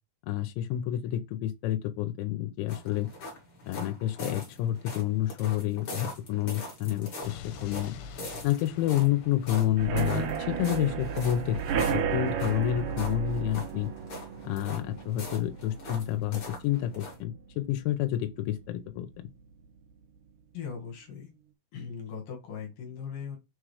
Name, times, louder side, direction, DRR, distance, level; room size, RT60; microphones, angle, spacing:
voice 1, 0.3-3.1 3.6-8.0 8.4-13.9 14.4-19.1, left 13 dB, 90° left, 3.1 m, -29 dB
sound 1, 2.7-17.2, left 1 dB, 35° left, 2.2 m, -43 dB
Explosion, 7.2-11.3, left 9 dB, 75° left, 2.9 m, -47 dB
sound 2, 9.8-17.4 17.8-18.1 18.4-18.5 18.9-19.0, right 7 dB, 80° right, 1.8 m, -33 dB
voice 2, 20.5-21.3 21.7-23.4, left 6 dB, 60° left, 2.9 m, -39 dB
6.9 x 3.7 x 4.8 m
omnidirectional pair, 5.3 m